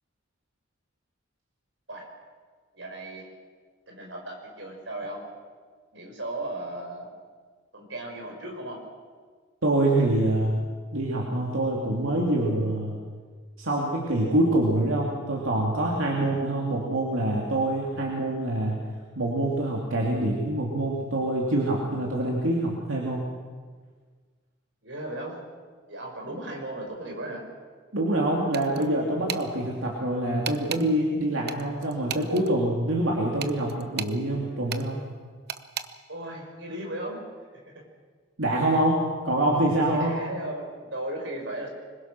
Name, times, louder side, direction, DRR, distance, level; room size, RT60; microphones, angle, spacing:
voice 1, 2.7-3.3 3.9-5.3 5.9-7.1 7.7-8.9 24.8-25.4 25.9-27.4 36.1-37.2 37.5-37.8 39.9-41.7, right 1 dB, 70° right, 1 dB, 5.4 m, -36 dB
voice 2, 9.6-10.6 10.9-13.0 13.6-18.8 19.2-23.3 27.9-35.0 38.4-39.0 39.2-40.1, right 1 dB, 85° right, -3 dB, 3.1 m, -25 dB
sound 1, 28.5-28.9 29.3-29.5 30.4-30.8 31.5-32.5 33.4-34.2 34.7-34.9 35.5-35.9, right 8 dB, 50° right, 0.9 m, -34 dB
25.5 x 21.5 x 6.2 m, 1.5 s
head